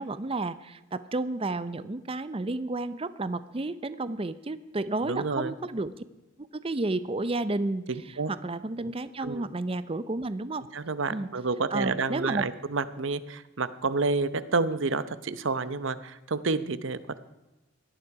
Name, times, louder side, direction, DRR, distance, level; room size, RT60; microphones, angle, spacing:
voice 1, 0.0-5.9 6.4-7.9 8.3-10.6 11.1-11.3 11.7-12.4, right 2 dB, 25° right, 14 dB, 0.5 m, -31 dB
voice 2, 5.0-5.5 7.9-8.3 9.2-9.5 10.7-17.2, right 3 dB, 70° right, 14 dB, 0.8 m, -29 dB
18.0 x 12.5 x 4.8 m, 1.0 s
head